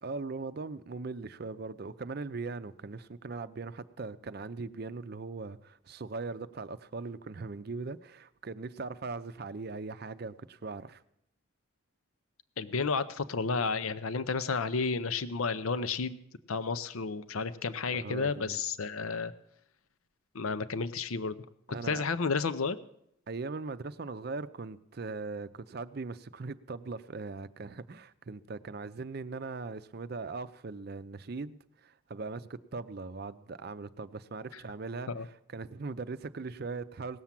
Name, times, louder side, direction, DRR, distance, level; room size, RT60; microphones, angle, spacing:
voice 1, 0.0-11.0 17.9-18.6 21.7-22.1 23.3-35.1 35.5-37.2, right 3 dB, 45° right, 13 dB, 0.5 m, -40 dB
voice 2, 12.6-16.2 16.5-19.3 20.3-21.4 21.8-22.8 35.1-35.3, left 4 dB, 85° left, 13 dB, 0.6 m, -31 dB
18.0 x 7.1 x 7.4 m, 0.76 s
head